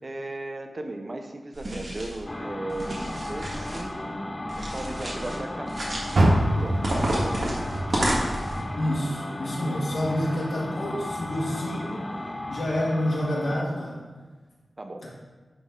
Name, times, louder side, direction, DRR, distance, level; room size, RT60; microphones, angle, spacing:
voice 1, 0.0-4.1 4.6-5.8 6.2-6.9 14.8-15.1, right 2 dB, 35° right, 6 dB, 0.7 m, -36 dB
sound 1, 1.5-2.2 2.7-3.8 4.5-5.4 5.7-6.3 6.8-8.6, right 1 dB, 50° right, 1.7 m, -30 dB
sound 2, 2.3-13.7, left 1 dB, 20° left, 0.5 m, -35 dB
Car, 6.1-9.4 9.8-11.2 11.6-11.7 12.3-12.4, right 1 dB, 70° right, 1.0 m, -26 dB
voice 2, 8.8-12.0 12.5-14.0, left 1 dB, 65° left, -6 dB, 1.8 m, -28 dB
9.9 x 4.2 x 3.7 m, 1.3 s
wide cardioid pair, 100°, 0 cm